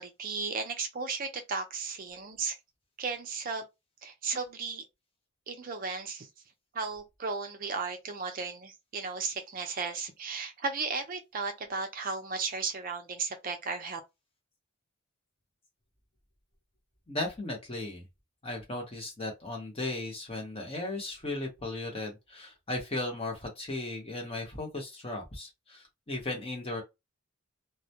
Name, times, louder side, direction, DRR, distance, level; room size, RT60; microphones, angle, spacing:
voice 1, 0.0-2.6 3.0-3.6 4.0-4.8 5.5-6.3 6.7-14.0, right 4 dB, 40° right, 0.5 m, -35 dB
voice 2, 17.1-18.1 18.4-26.8, left 2 dB, 30° left, 0.8 m, -36 dB
2.2 x 2.0 x 2.8 m
head